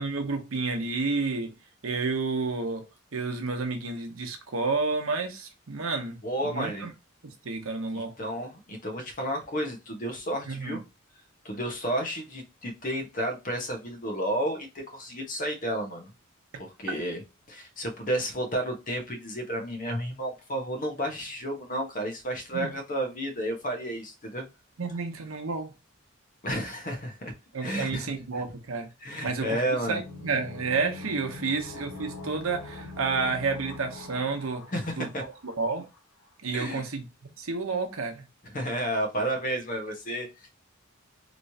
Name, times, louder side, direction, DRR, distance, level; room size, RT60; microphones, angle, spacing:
voice 1, 0.0-1.5 1.8-2.8 3.1-6.2 6.4-6.9 7.2-8.1 10.5-10.8 16.5-16.9 22.5-22.8 24.8-25.7 27.5-28.9 29.2-29.6 29.9-34.7 34.9-35.9 36.4-38.2, right 4 dB, 90° right, 0.8 m, -30 dB
voice 2, 6.2-6.9 7.9-10.8 11.4-16.1 16.6-17.2 17.5-24.4 26.4-27.3 27.6-28.4 29.0-30.0 34.7-35.2 36.5-36.8 38.5-40.5, right 1 dB, 40° left, 1.0 m, -32 dB
sound 1, 29.8-35.5 35.8-35.9, left 2 dB, 70° left, 1.1 m, -43 dB
3.1 x 3.0 x 2.7 m
head